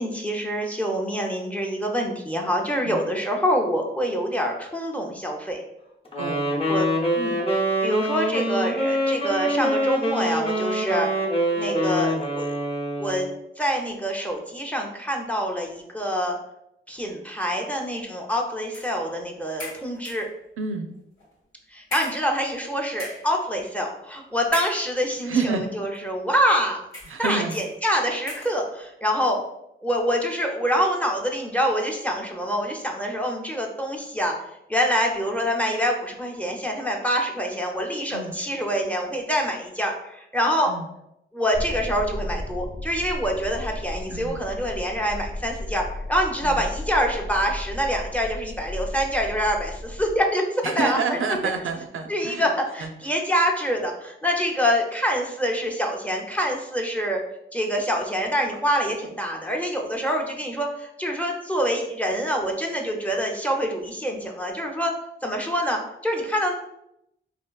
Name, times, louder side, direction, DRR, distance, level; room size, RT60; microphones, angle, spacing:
voice 1, 0.0-5.6 6.7-6.9 7.1-7.4 7.8-11.1 11.6-12.5 13.0-13.3 13.6-16.4 16.9-20.3 21.7-26.8 27.2-29.4 29.8-34.3 34.7-40.7 41.3-51.2 52.1-57.2 57.5-64.9 65.2-66.5, equal, 5° left, 1 dB, 0.5 m, -26 dB
Wind instrument woodwind instrument, 6.1-13.3, equal, 25° left, 0.9 m, -25 dB
voice 2, 6.2-6.5 20.6-20.9 25.2-25.7 27.1-27.6 38.1-38.3 40.7-40.9 44.1-44.4 46.4-46.6 50.6-52.5 52.8-52.9, right 4 dB, 75° right, 5 dB, 0.4 m, -28 dB
sound 1, 18.7-19.0 19.6-20.4 21.2-21.3 21.9-22.7 22.9-23.4 24.5-25.2 25.9-26.1 26.9-27.2 27.5-27.7 28.3-28.6, left 1 dB, 85° left, 1.3 m, -37 dB
sound 2, 41.5-50.2, left 1 dB, 50° left, 0.6 m, -34 dB
3.5 x 2.5 x 2.3 m, 0.82 s
cardioid pair, 70°, 21 cm